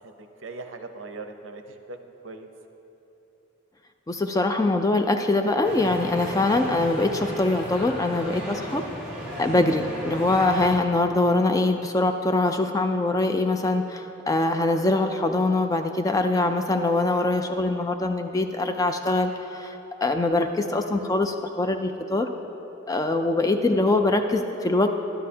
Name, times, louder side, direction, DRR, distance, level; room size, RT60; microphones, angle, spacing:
voice 1, 0.0-2.0 2.2-2.5, right 3 dB, 65° right, 6 dB, 0.7 m, -40 dB
voice 2, 4.1-8.8 9.4-19.7 20.0-22.3 22.9-24.9, left 2 dB, 15° left, 6 dB, 0.3 m, -23 dB
sound 1, 5.6-10.8, equal, 5° right, 2.2 m, -35 dB
12.0 x 10.5 x 2.8 m, 3.0 s
head